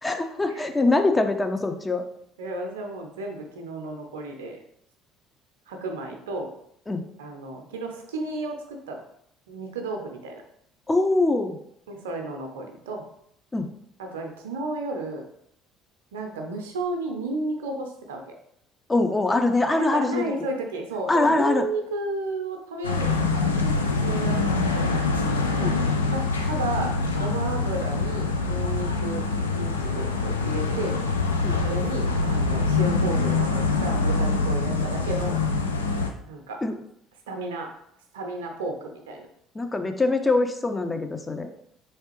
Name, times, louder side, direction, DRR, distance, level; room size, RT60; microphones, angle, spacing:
voice 1, 0.0-2.0 6.9-7.0 10.9-11.6 13.5-13.7 18.9-20.2 21.1-21.7 25.6-25.8 31.4-31.6 36.6-36.8 39.6-41.5, left 2 dB, 20° left, 6 dB, 0.5 m, -23 dB
voice 2, 2.4-4.6 5.7-6.5 7.2-9.0 9.5-10.4 11.9-13.1 14.0-15.3 16.1-18.3 19.7-24.9 26.1-29.3 29.5-31.0 31.6-35.4 36.2-36.6 37.3-37.8 38.1-39.3, right 2 dB, 75° right, 3 dB, 0.5 m, -33 dB
sound 1, 22.8-36.1, left 3 dB, 85° left, 0.3 m, -24 dB
3.5 x 3.2 x 2.9 m, 0.73 s
figure-of-eight pair, 55°, 0 cm